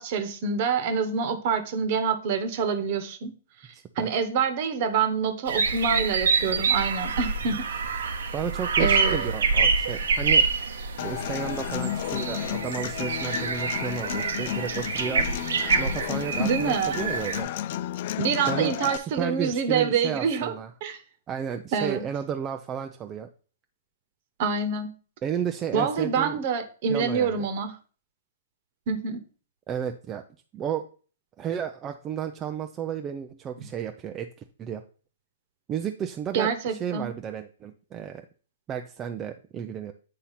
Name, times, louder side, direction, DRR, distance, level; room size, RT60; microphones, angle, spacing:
voice 1, 0.0-3.3 4.0-7.7 8.8-9.3 16.4-17.0 18.2-20.5 20.8-21.0 21.7-22.0 24.4-24.9 25.7-27.7 28.9-29.2 36.3-37.1, right 6 dB, 45° right, 8 dB, 1.1 m, -26 dB
voice 2, 3.7-4.1 7.5-7.6 8.3-10.5 11.0-15.3 15.7-17.5 18.5-18.9 19.2-20.7 21.3-23.3 25.2-26.4 26.9-27.5 29.7-30.2 30.5-30.9 31.4-34.3 34.6-34.8 35.7-38.3 38.7-39.9, right 8 dB, 20° right, 6 dB, 0.4 m, -32 dB
sound 1, 5.5-17.4, right 4 dB, 75° right, 0.9 m, -26 dB
Human voice / Acoustic guitar, 11.0-19.0, left 12 dB, 50° left, 0.3 m, -32 dB
8.2 x 2.8 x 5.7 m, 0.39 s
hypercardioid pair, 135°, 0 cm